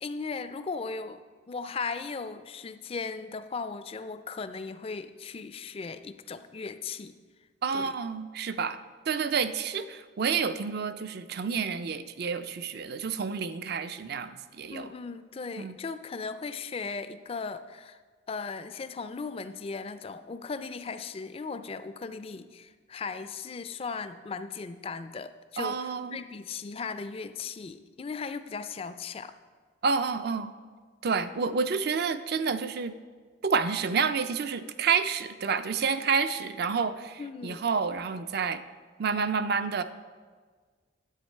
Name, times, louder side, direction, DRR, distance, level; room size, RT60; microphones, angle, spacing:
voice 1, 0.0-7.1 7.7-8.0 14.7-18.0 18.3-29.3 37.2-37.6, left 4 dB, 30° left, 11 dB, 0.3 m, -37 dB
voice 2, 7.6-8.8 9.1-14.9 15.6-15.8 25.6-26.2 29.8-30.5 31.0-33.0 33.4-38.6 39.0-39.8, right 5 dB, 50° right, 11 dB, 0.4 m, -29 dB
10.0 x 8.2 x 4.5 m, 1.5 s
head